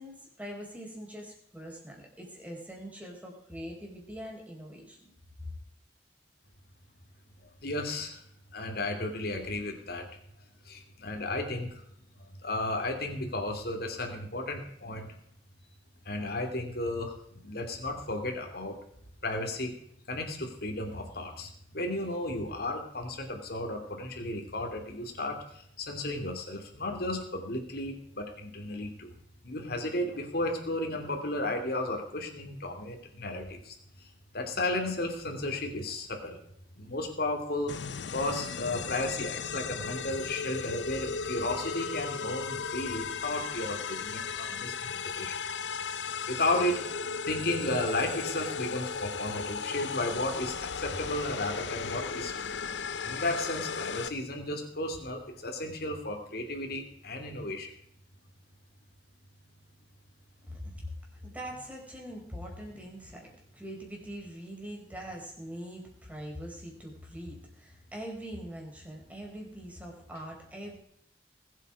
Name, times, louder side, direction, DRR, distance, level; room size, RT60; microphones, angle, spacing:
voice 1, 0.0-5.1 60.5-60.9 61.2-63.3 63.5-70.8, equal, 10° right, -1 dB, 4.6 m, -43 dB
voice 2, 7.6-8.2 8.5-10.1 10.6-11.8 12.2-15.1 16.0-18.8 19.2-19.7 20.1-29.1 29.4-33.8 34.3-36.4 36.8-37.7 38.1-45.4 46.3-52.5 53.0-57.7, left 2 dB, 60° left, 3 dB, 2.8 m, -34 dB
sound 1, 37.7-54.1, left 5 dB, 90° left, 0.7 m, -36 dB
20.5 x 8.3 x 4.9 m, 0.71 s
head